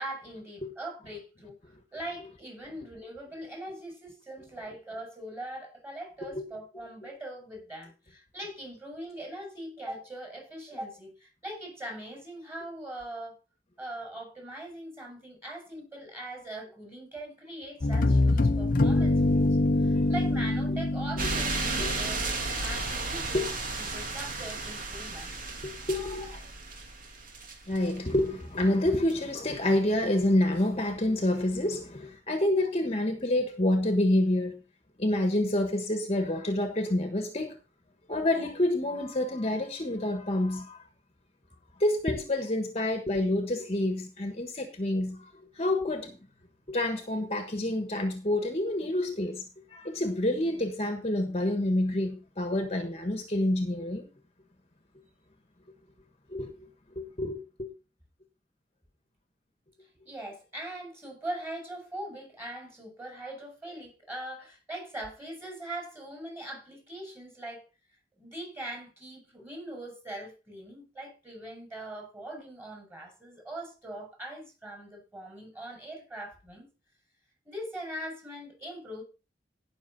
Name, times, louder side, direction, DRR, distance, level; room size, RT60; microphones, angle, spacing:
voice 1, 0.0-1.5 1.9-13.3 13.8-22.2 22.6-23.5 23.8-25.3 60.0-67.6 68.2-76.7 77.4-79.0, right 1 dB, 15° right, 6.3 m, -41 dB
voice 2, 6.2-6.5 7.0-7.1 20.3-20.4 21.2-21.3 21.8-21.9 22.7-22.9 23.3-23.5 25.6-26.4 27.7-34.6 35.0-37.6 38.1-40.8 41.8-46.2 46.7-54.1 56.3-56.5 56.9-57.7, left 1 dB, 35° left, 1.4 m, -28 dB
sound 1, 17.8-22.6, left 2 dB, 50° left, 0.8 m, -25 dB
sound 2, 21.2-28.1 29.1-29.2, right 3 dB, 50° right, 2.3 m, -34 dB
17.5 x 6.4 x 4.1 m
head